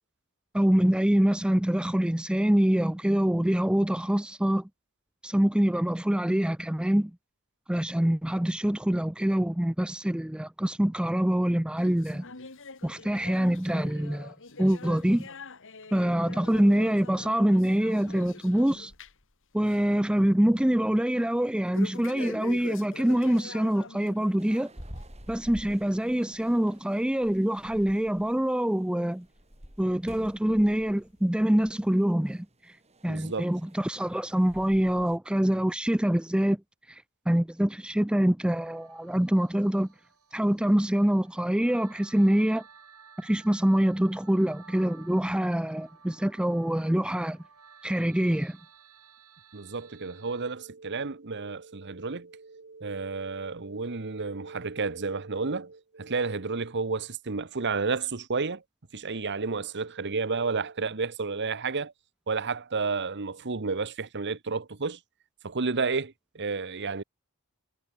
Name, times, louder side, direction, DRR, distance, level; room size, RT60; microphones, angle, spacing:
voice 1, 0.5-4.7 5.2-7.1 7.7-12.2 12.8-14.3 14.6-15.3 15.9-18.9 19.5-24.7 25.3-29.3 29.8-32.5 33.0-36.6 36.9-39.9 40.3-42.6 43.2-47.4 47.8-48.6, equal, 5° right, 0.4 m, -25 dB
sound 1, 11.8-19.3 19.6-20.0 20.3-20.4 21.7-24.4 24.8-25.0 25.7-25.8 26.7-26.8 27.5-27.6, left 3 dB, 60° left, 2.9 m, -44 dB
sound 2, 24.4-35.2, equal, 30° right, 7.3 m, -49 dB
voice 2, 33.1-33.5 49.5-58.6 58.9-61.9 62.3-65.0 65.4-67.0, right 4 dB, 55° right, 1.2 m, -31 dB
sound 3, 38.5-50.5, right 6 dB, 85° right, 7.0 m, -55 dB
head